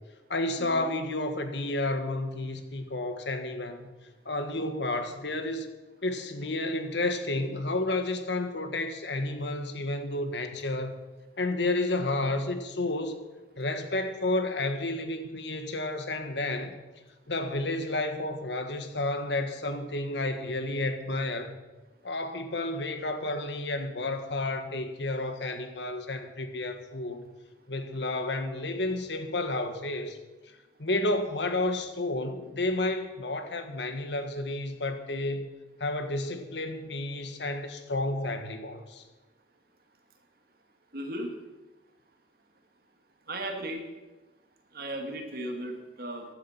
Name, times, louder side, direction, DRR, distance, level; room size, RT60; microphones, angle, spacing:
voice 1, 0.3-3.9 4.2-5.7 6.0-11.0 11.4-13.2 13.6-16.7 17.3-21.6 22.0-27.2 27.7-30.2 30.8-35.5 35.8-39.0, left 2 dB, 75° left, 7 dB, 1.6 m, -31 dB
voice 2, 40.9-41.4 43.3-43.8 44.7-46.2, right 1 dB, 55° right, 3 dB, 2.4 m, -36 dB
15.0 x 11.5 x 6.0 m, 1.2 s
head